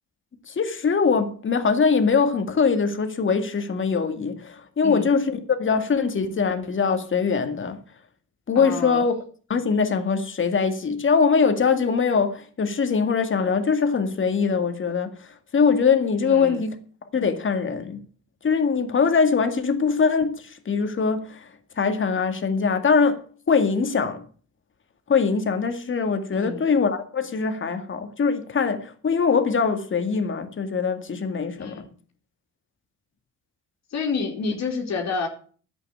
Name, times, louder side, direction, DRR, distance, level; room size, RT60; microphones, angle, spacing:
voice 1, 0.5-7.8 8.5-9.1 9.5-16.8 17.1-18.1 18.4-21.5 21.8-24.2 25.1-31.8, left 5 dB, 40° left, 2.0 m, -22 dB
voice 2, 8.5-9.0 16.2-16.6 26.3-26.7 31.6-31.8 33.9-35.3, left 4 dB, 60° left, 3.1 m, -29 dB
11.0 x 8.3 x 8.5 m
cardioid pair, 90°, 30 cm